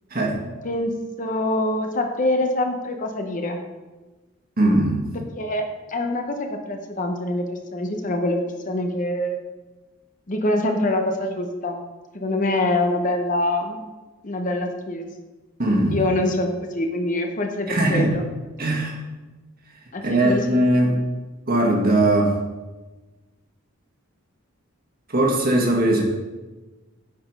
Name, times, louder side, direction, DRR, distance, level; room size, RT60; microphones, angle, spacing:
voice 1, 0.6-3.6 5.4-9.4 10.3-11.8 12.1-13.8 14.2-15.1 15.9-18.2 18.6-18.8 19.9-20.4, left 1 dB, 40° left, 4 dB, 0.9 m, -25 dB
voice 2, 4.6-5.1 15.6-16.0 17.7-18.1 18.6-18.9 20.0-21.0 21.5-22.3 25.1-26.0, right 1 dB, 45° right, 0 dB, 1.5 m, -20 dB
9.2 x 5.1 x 5.4 m, 1.2 s
head